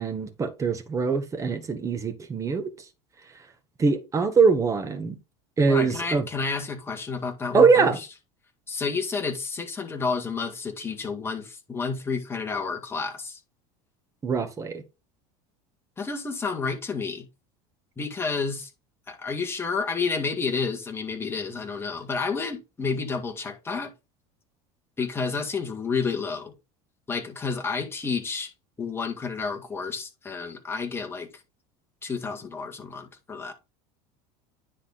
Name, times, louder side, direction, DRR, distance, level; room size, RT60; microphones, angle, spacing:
voice 1, 0.0-2.7 3.8-5.2 5.6-6.2 7.5-8.0 14.2-14.8, right 5 dB, 20° right, 1.5 m, -22 dB
voice 2, 5.7-7.9 8.7-13.4 16.0-17.3 18.0-18.7 19.1-23.9 25.0-26.5 27.1-28.5 28.8-31.3 32.0-33.5, left 4 dB, 15° left, 2.0 m, -30 dB
9.8 x 4.2 x 4.1 m
supercardioid pair, 135°, 15 cm